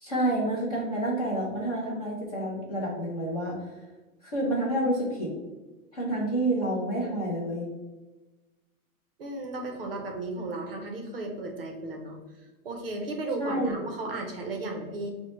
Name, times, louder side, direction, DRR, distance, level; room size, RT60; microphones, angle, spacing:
voice 1, 0.0-3.5 4.2-5.3 5.9-7.7 13.4-13.8, right 1 dB, 25° left, -5 dB, 0.5 m, -28 dB
voice 2, 9.2-12.2 12.6-15.1, right 2 dB, 40° right, 2 dB, 0.5 m, -34 dB
6.0 x 2.1 x 2.9 m, 1.2 s
supercardioid pair, 180°, 45 cm